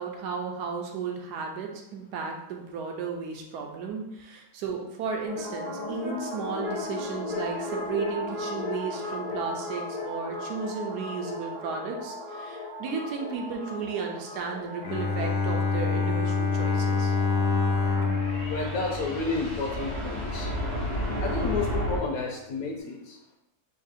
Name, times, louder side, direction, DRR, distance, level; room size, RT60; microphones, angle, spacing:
voice 1, 0.0-17.1, right 5 dB, 75° right, 2 dB, 1.2 m, -34 dB
sound 1, 5.2-22.0, left 1 dB, 35° right, 0.8 m, -35 dB
Bowed string instrument, 14.8-19.8, left 4 dB, 90° left, 1.2 m, -27 dB
voice 2, 18.4-20.5 21.2-23.2, left 3 dB, 70° left, 1 dB, 1.0 m, -31 dB
3.4 x 2.7 x 4.0 m, 0.89 s
omnidirectional pair, 1.8 m